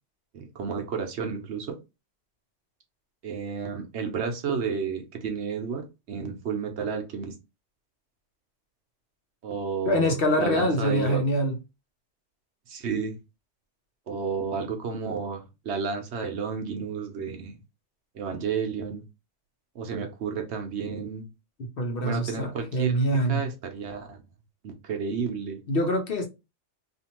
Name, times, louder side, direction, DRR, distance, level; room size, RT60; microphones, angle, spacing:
voice 1, 0.3-1.8 3.2-7.3 9.4-11.2 12.7-13.2 14.1-17.6 18.1-19.0 19.7-21.3 22.0-23.0 23.3-24.2 24.6-25.6, right 5 dB, 70° right, 1.0 m, -31 dB
voice 2, 9.9-11.6 21.8-23.4 25.7-26.3, equal, 55° left, 0.9 m, -25 dB
2.8 x 2.5 x 2.9 m
omnidirectional pair, 1.2 m